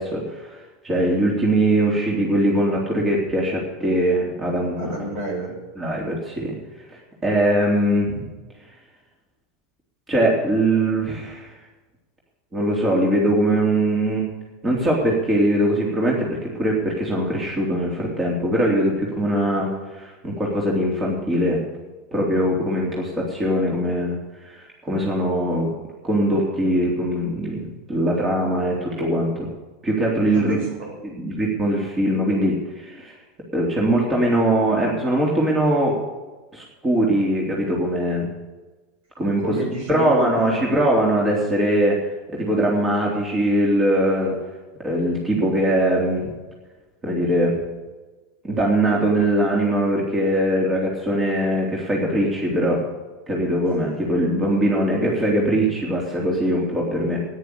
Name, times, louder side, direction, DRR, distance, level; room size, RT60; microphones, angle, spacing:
voice 1, 0.0-4.9 5.8-6.6 6.9-8.3 10.1-11.5 12.5-14.3 14.6-21.6 22.1-25.7 26.0-29.5 29.8-30.6 31.0-33.2 33.5-36.0 36.5-38.3 39.2-39.4 39.9-42.0 42.3-44.4 44.8-46.3 47.0-47.6 48.4-52.8 53.3-57.3, right 1 dB, 20° right, -2 dB, 3.6 m, -21 dB
voice 2, 4.7-5.6 30.2-31.0 39.4-40.6, right 2 dB, 60° right, 0 dB, 6.5 m, -30 dB
13.5 x 10.5 x 6.9 m, 1.2 s
figure-of-eight pair, 85°, 0 cm